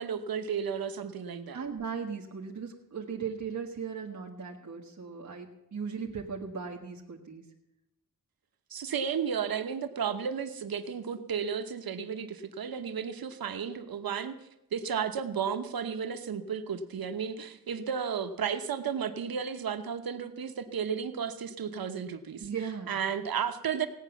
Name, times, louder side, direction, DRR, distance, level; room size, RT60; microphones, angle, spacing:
voice 1, 0.0-1.6 8.7-14.3 14.7-22.5 22.9-23.9, right 7 dB, 80° right, 9 dB, 1.0 m, -33 dB
voice 2, 1.5-7.4 22.4-23.0, right 6 dB, 50° right, 0 dB, 1.5 m, -37 dB
17.0 x 9.1 x 7.1 m, 0.90 s
wide cardioid pair, 140°, 36 cm